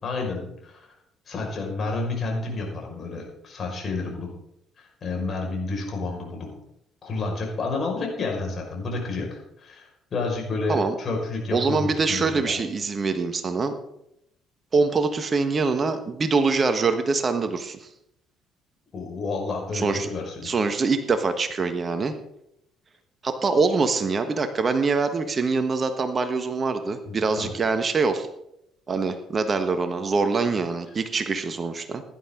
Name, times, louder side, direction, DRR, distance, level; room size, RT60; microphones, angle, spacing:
voice 1, 0.0-0.9 1.3-4.3 4.8-6.5 7.0-12.6 18.9-20.5 27.1-27.6, left 3 dB, 45° left, 0 dB, 5.5 m, -30 dB
voice 2, 11.5-13.7 14.7-17.9 19.7-20.1 20.4-22.1 23.2-28.3 28.9-32.0, right 4 dB, 40° right, 8 dB, 1.4 m, -24 dB
16.5 x 11.5 x 3.8 m, 0.78 s
hypercardioid pair, 50°, 0 cm